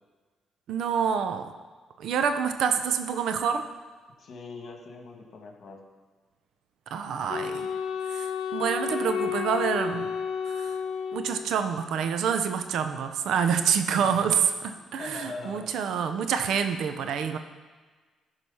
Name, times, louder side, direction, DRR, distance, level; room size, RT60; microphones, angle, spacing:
voice 1, 0.7-1.5 2.0-3.7 6.9-7.7 8.1-10.1 10.6-10.8 11.1-17.4, right 7 dB, 75° right, 8 dB, 0.7 m, -27 dB
voice 2, 4.2-5.8 13.9-15.7, left 3 dB, 55° left, 2 dB, 1.9 m, -42 dB
Wind instrument woodwind instrument, 7.3-11.7, left 7 dB, 80° left, 1.1 m, -31 dB
13.5 x 4.9 x 5.6 m, 1.4 s
cardioid pair, 90°, 0 cm